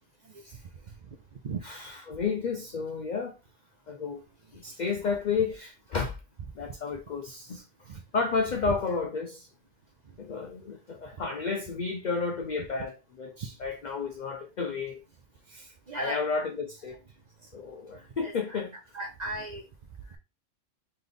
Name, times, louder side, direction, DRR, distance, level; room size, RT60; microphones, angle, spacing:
voice 1, 0.2-0.6 1.4-1.6 4.7-4.8 5.3-5.4 7.9-8.0 8.6-8.9 12.6-12.7 15.9-16.3 18.2-19.7, right 3 dB, 90° right, 0.3 m, -37 dB
voice 2, 2.1-3.3 3.9-4.2 4.5-6.2 6.6-9.5 10.2-15.0 15.5-17.0 17.4-18.7, left 5 dB, 85° left, 0.4 m, -32 dB
3.4 x 3.1 x 3.8 m
omnidirectional pair, 1.4 m